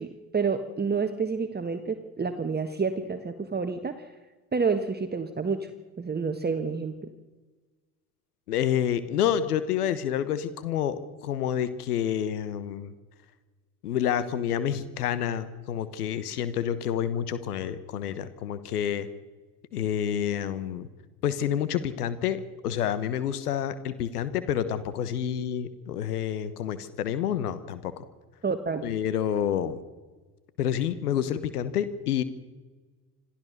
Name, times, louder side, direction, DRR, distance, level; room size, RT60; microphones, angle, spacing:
voice 1, 0.0-4.1 4.5-5.7 6.0-7.1 28.4-28.9, right 5 dB, 20° right, 8 dB, 1.5 m, -29 dB
voice 2, 8.5-12.9 13.8-19.1 19.7-20.9 21.2-28.0 28.8-29.8 30.6-32.2, left 9 dB, 80° left, 14 dB, 1.3 m, -28 dB
26.5 x 15.0 x 6.6 m, 1.3 s
figure-of-eight pair, 60°, 45 cm